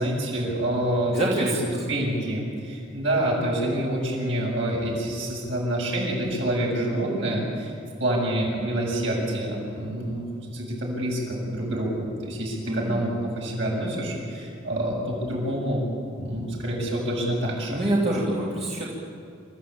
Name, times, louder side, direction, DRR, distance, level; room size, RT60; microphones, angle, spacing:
voice 1, 0.0-1.1 1.4-1.5 1.9-7.7 8.0-15.8 16.2-17.8, right 1 dB, 70° right, -3 dB, 7.5 m, -27 dB
voice 2, 1.1-1.8 12.7-13.0 17.7-18.9, right 1 dB, 35° right, -5 dB, 3.0 m, -26 dB
27.0 x 14.5 x 8.7 m, 2.5 s
head